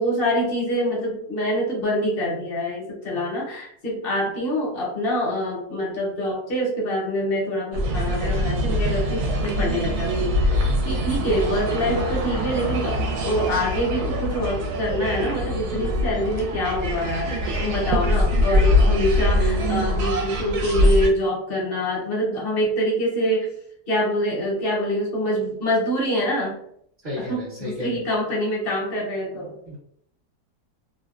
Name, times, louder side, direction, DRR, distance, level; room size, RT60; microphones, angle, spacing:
voice 1, 0.0-23.5 23.9-26.6 27.2-29.5, equal, 50° left, -2 dB, 0.8 m, -25 dB
sound 1, 7.7-21.1, left 1 dB, 75° right, 1.1 m, -23 dB
voice 2, 27.0-27.9 29.7-29.8, left 1 dB, 35° right, -9 dB, 0.8 m, -32 dB
2.7 x 2.1 x 2.3 m, 0.67 s
omnidirectional pair, 1.7 m